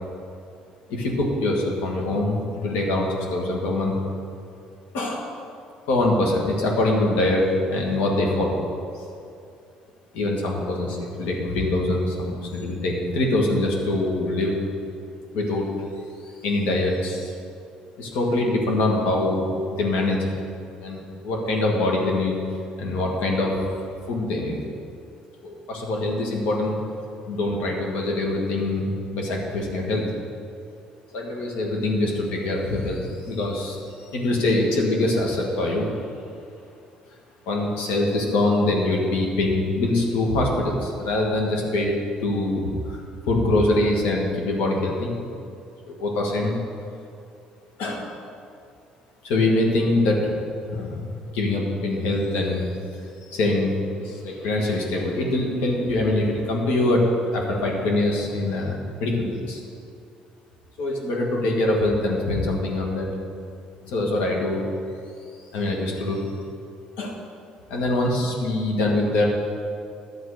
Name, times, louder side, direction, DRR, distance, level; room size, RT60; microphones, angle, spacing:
voice 1, 0.9-3.9 4.9-5.2 5.9-7.4 7.7-8.6 8.9-9.0 10.1-14.6 15.3-15.7 16.4-17.3 18.0-19.5 19.7-20.3 20.8-22.4 22.8-23.5 24.1-24.6 25.4-26.7 27.3-30.0 31.1-35.9 37.5-41.9 42.2-45.1 45.9-46.5 47.8-48.0 49.2-50.3 50.7-52.7 53.3-53.7 54.0-58.7 59.0-59.6 60.8-63.1 63.8-64.6 65.5-66.2 67.0-67.1 67.7-69.2, left 2 dB, 90° left, -1 dB, 1.9 m, -24 dB
11.0 x 7.6 x 5.0 m, 2.5 s
cardioid pair, 110°, 2 cm